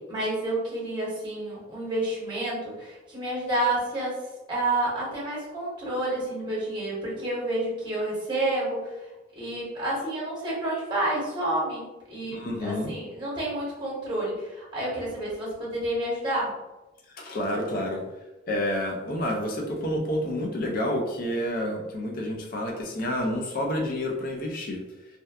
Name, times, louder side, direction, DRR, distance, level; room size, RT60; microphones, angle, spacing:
voice 1, 0.0-4.2 4.5-8.9 9.4-16.6, right 1 dB, 20° right, -6 dB, 0.9 m, -29 dB
voice 2, 12.3-12.9 17.1-18.0 18.5-24.8, left 1 dB, 45° left, 0 dB, 0.4 m, -29 dB
2.6 x 2.2 x 2.3 m, 1.1 s
head